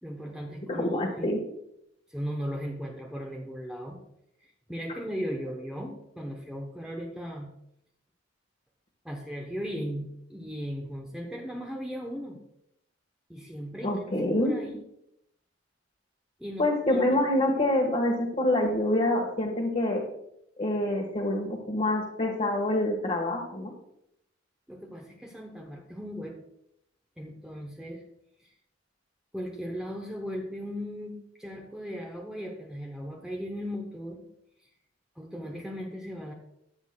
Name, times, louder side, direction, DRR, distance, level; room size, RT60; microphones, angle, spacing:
voice 1, 0.0-1.3 2.1-4.0 4.7-7.5 9.0-12.4 13.3-14.1 14.4-14.8 16.4-17.1 24.7-26.4 27.2-28.0 28.4-28.5 29.3-34.2 35.2-36.3, equal, 5° right, 0 dB, 0.8 m, -37 dB
voice 2, 0.7-1.4 13.8-14.6 16.6-20.0 20.6-23.7, left 1 dB, 35° left, -3 dB, 1.3 m, -26 dB
13.5 x 8.1 x 2.2 m, 0.78 s
head